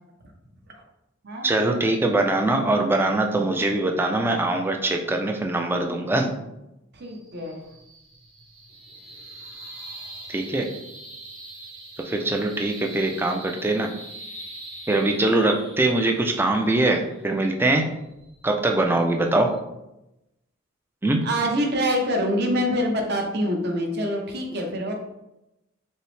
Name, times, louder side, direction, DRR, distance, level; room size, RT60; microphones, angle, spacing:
voice 1, 1.4-6.3 10.3-10.7 12.0-13.9 14.9-17.9 18.4-19.6 21.0-21.2, right 2 dB, 10° right, 3 dB, 0.3 m, -22 dB
voice 2, 6.9-7.6 21.2-24.9, equal, 55° right, 2 dB, 0.7 m, -25 dB
sound 1, 6.9-19.6, right 2 dB, 75° right, 1.4 m, -43 dB
5.4 x 2.0 x 3.2 m, 0.91 s
head